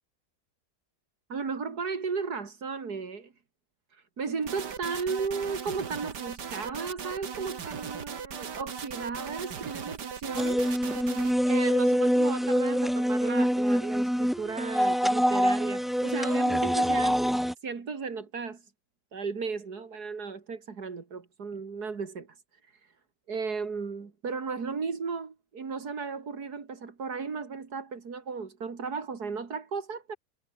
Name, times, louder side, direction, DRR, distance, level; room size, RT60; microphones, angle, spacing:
voice 1, 1.3-3.3 4.2-10.6 11.5-18.6 19.1-22.3 23.3-30.2, right 5 dB, 70° right, 2.9 m, -35 dB
sound 1, 4.4-11.3, right 7 dB, 85° right, 2.4 m, -38 dB
sound 2, 10.3-17.5, equal, ahead, 0.5 m, -25 dB
omnidirectional pair, 1.8 m